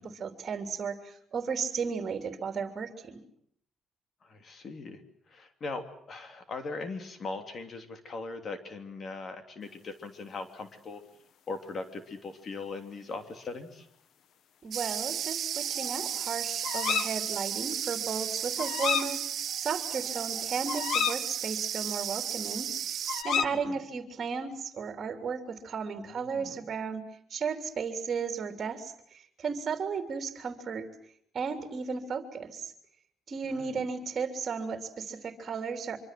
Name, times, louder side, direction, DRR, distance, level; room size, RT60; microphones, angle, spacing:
voice 1, 0.0-3.2 14.6-19.2 19.5-23.0 23.2-27.0 27.3-30.9 31.3-32.7 33.3-36.0, right 5 dB, 40° right, 6 dB, 3.3 m, -34 dB
voice 2, 4.2-5.0 5.3-11.0 11.5-13.9 23.6-23.8 26.0-26.6 33.5-33.9, left 3 dB, 45° left, 7 dB, 3.1 m, -40 dB
rain-maker, 14.7-23.2, right 9 dB, 60° right, 1.7 m, -34 dB
sound 1, 15.6-16.2 16.6-17.1 18.6-19.1 19.5-19.6 19.9-21.2 23.1-23.4, left 8 dB, 65° left, 1.6 m, -31 dB
25.5 x 25.0 x 7.7 m, 0.67 s
cardioid pair, 110°, 0 cm